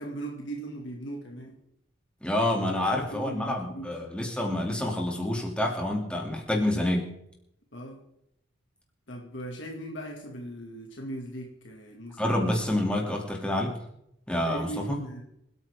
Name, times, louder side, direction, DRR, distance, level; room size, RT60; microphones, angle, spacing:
voice 1, 0.0-1.6 2.9-3.9 7.7-8.0 9.1-12.4 14.5-15.2, right 1 dB, 65° left, 0 dB, 2.2 m, -38 dB
voice 2, 2.2-7.1 12.2-13.7 14.3-15.0, left 1 dB, 5° left, -1 dB, 2.7 m, -28 dB
26.5 x 8.9 x 3.7 m, 0.78 s
head